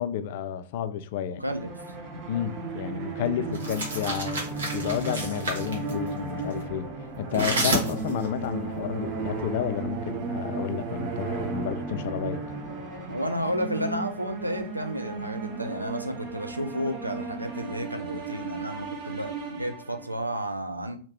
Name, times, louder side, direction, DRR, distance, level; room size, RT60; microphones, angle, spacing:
voice 1, 0.0-1.4 2.3-6.9 7.2-12.4, left 9 dB, 50° left, 0.3 m, -31 dB
sound 1, 1.4-20.2, right 3 dB, 45° right, 1.3 m, -35 dB
voice 2, 1.4-1.7 13.1-21.0, equal, 85° right, 0.5 m, -32 dB
sound 2, 3.5-5.9 7.3-8.3, right 2 dB, 65° right, 1.0 m, -29 dB
2.9 x 2.8 x 4.3 m
figure-of-eight pair, 90°, 0 cm